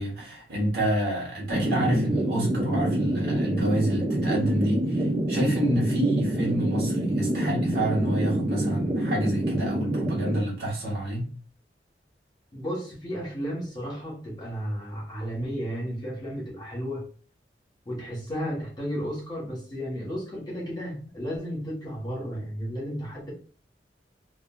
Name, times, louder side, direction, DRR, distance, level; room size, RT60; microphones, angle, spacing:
voice 1, 0.0-11.3, right 1 dB, 60° right, 1.2 m, -28 dB
sound 1, 1.5-10.4, right 1 dB, 25° right, 0.4 m, -26 dB
voice 2, 12.5-17.0 17.8-23.3, equal, 25° left, 1.2 m, -33 dB
3.0 x 2.5 x 2.3 m
head